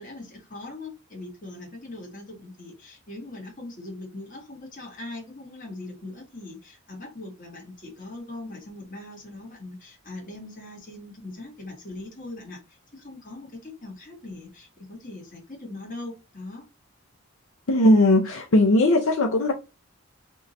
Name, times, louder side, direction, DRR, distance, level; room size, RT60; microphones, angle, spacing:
voice 1, 0.0-16.6, left 2 dB, 35° left, 1.5 m, -41 dB
voice 2, 17.7-19.5, left 1 dB, 65° left, 0.6 m, -18 dB
3.6 x 2.6 x 4.0 m
head